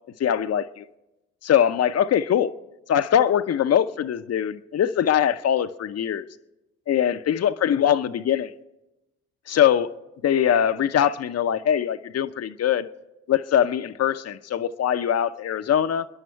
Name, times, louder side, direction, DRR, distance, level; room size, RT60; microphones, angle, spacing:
voice 1, 0.2-0.8 1.4-2.5 2.9-6.2 6.9-8.5 9.5-9.9 10.2-12.9 13.3-16.1, left 9 dB, 50° left, 11 dB, 0.7 m, -22 dB
28.0 x 11.0 x 4.6 m, 0.99 s
hypercardioid pair, 60°, 33 cm